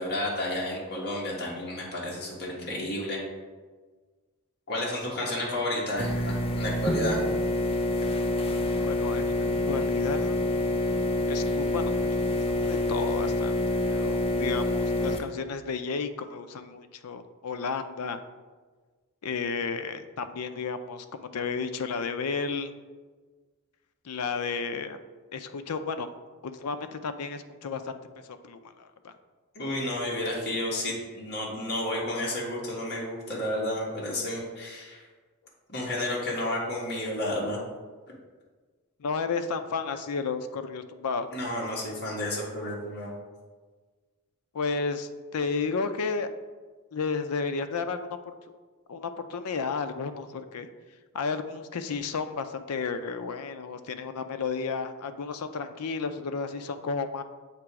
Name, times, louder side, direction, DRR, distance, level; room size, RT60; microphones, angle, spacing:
voice 1, 0.0-3.2 4.7-7.2 29.5-35.0 35.7-37.6 41.3-43.1, left 1 dB, 50° left, -3 dB, 1.5 m, -31 dB
Fluorescent Shop Light with Magnetic Ballast Startup, 6.0-15.2, left 2 dB, 25° left, 0.5 m, -27 dB
voice 2, 8.8-9.4 9.7-10.4 11.3-12.2 12.4-18.2 19.2-22.7 24.0-25.0 25.3-26.1 26.4-28.0 28.2-29.1 39.0-41.3 44.5-46.3 46.9-48.0 48.2-48.3 48.9-50.7 51.1-57.2, left 5 dB, 90° left, 9 dB, 0.5 m, -32 dB
7.4 x 2.9 x 4.7 m, 1.4 s
head